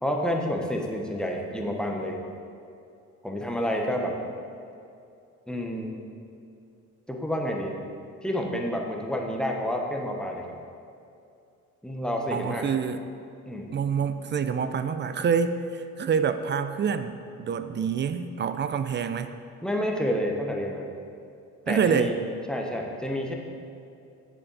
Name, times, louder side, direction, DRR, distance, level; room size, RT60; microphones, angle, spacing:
voice 1, 0.0-2.2 3.2-4.2 5.5-5.9 7.1-7.7 8.2-10.5 11.8-12.7 13.5-13.7 19.6-20.9 21.7-22.2 22.5-23.3, equal, 5° left, 0 dB, 1.0 m, -29 dB
voice 2, 12.3-13.0 13.7-19.3 21.7-22.1, right 6 dB, 35° right, 10 dB, 0.4 m, -27 dB
7.2 x 7.2 x 4.0 m, 2.5 s
cardioid pair, 90°, 30 cm